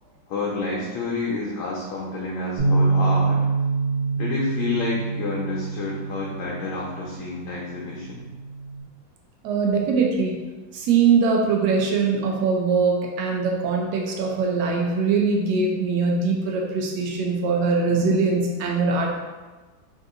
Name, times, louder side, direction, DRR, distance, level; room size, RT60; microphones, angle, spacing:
voice 1, 0.3-3.4 4.2-8.3, left 3 dB, 85° left, -4 dB, 1.4 m, -29 dB
Bass guitar, 2.6-8.8, right 3 dB, 40° right, 1.2 m, -25 dB
voice 2, 9.4-10.4 10.7-19.1, right 4 dB, 75° right, 0 dB, 1.0 m, -22 dB
3.6 x 2.7 x 2.4 m, 1.2 s
omnidirectional pair, 2.2 m